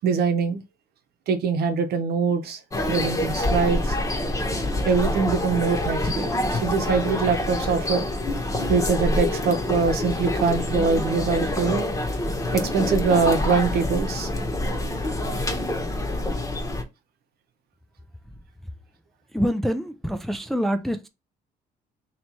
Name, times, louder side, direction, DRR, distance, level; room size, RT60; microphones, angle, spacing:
voice 1, 0.0-0.6 1.3-2.6 2.9-4.0 4.8-8.1 8.7-11.9 12.5-14.3, right 5 dB, 70° right, 1.0 m, -23 dB
sound 1, 2.7-16.8, left 1 dB, 20° left, 1.0 m, -26 dB
voice 2, 19.3-21.1, equal, ahead, 0.4 m, -25 dB
3.1 x 3.0 x 4.3 m
cardioid pair, 110°, 17 cm